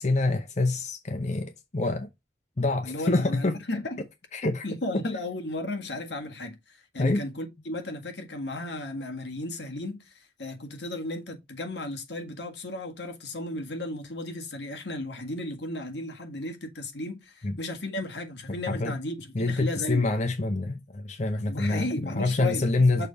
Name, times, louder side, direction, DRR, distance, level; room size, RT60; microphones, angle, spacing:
voice 1, 0.0-2.1 2.6-3.5 4.3-4.7 7.0-7.2 17.4-17.6 18.5-18.9 19.3-23.1, left 2 dB, 40° left, 0.7 m, -26 dB
voice 2, 2.8-4.0 4.6-20.1 21.5-22.7 22.9-23.1, left 1 dB, 75° left, 1.8 m, -34 dB
6.6 x 3.4 x 5.2 m
head